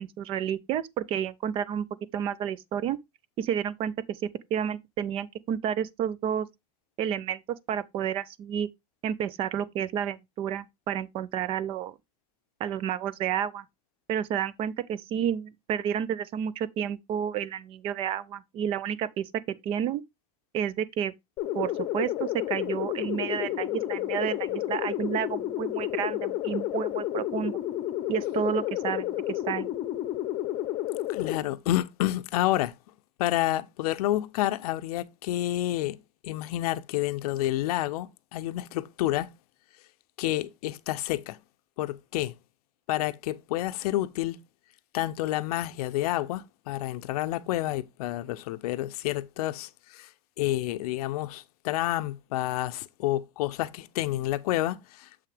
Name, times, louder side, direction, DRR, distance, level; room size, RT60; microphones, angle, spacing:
voice 1, 0.0-1.9 2.1-3.0 3.4-6.5 7.0-7.4 7.7-8.7 9.0-11.9 12.6-13.6 14.1-19.3 19.6-20.0 20.5-21.1 21.5-27.6 28.1-29.7, right 9 dB, 30° right, 0.4 m, -30 dB
sound 1, 21.4-31.4, left 14 dB, 35° left, 0.7 m, -31 dB
voice 2, 31.1-32.7 33.2-39.3 40.2-41.4 41.8-42.4 42.9-44.4 44.9-50.1 50.4-55.1, left 15 dB, 80° left, 0.6 m, -29 dB
6.9 x 5.7 x 3.3 m
supercardioid pair, 155°, 19 cm